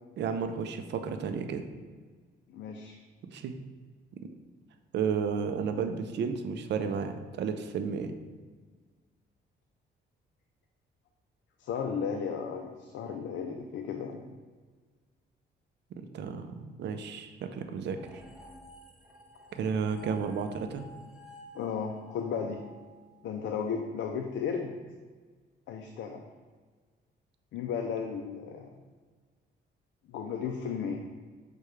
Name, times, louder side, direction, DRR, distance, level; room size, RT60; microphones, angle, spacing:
voice 1, 0.2-1.6 3.2-3.6 4.1-4.3 4.9-8.2 15.9-18.2 19.5-20.9, right 6 dB, 65° right, 7 dB, 0.4 m, -33 dB
voice 2, 2.5-3.0 11.6-14.2 21.5-22.6 23.2-24.8 25.7-26.3 27.5-28.7 30.1-31.0, left 6 dB, 70° left, 3 dB, 0.4 m, -34 dB
sound 1, 18.0-23.4, right 1 dB, 5° right, 0.6 m, -52 dB
6.4 x 2.3 x 3.1 m, 1.5 s
cardioid pair, 90°, 20 cm